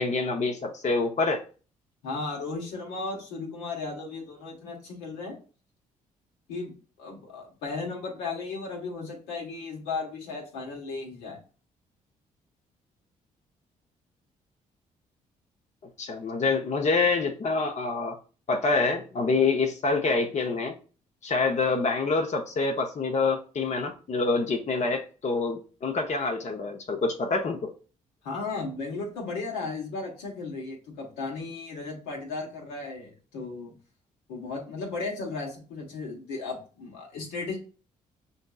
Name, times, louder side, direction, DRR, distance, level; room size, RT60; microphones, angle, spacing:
voice 1, 0.0-1.4 16.0-18.2 18.5-20.7 21.2-27.7, left 3 dB, 45° left, 3 dB, 0.7 m, -26 dB
voice 2, 2.0-5.4 6.5-11.4 28.2-33.7 34.3-37.6, left 3 dB, 80° left, -1 dB, 1.2 m, -35 dB
6.2 x 2.6 x 2.3 m, 0.37 s
hypercardioid pair, 50°, 17 cm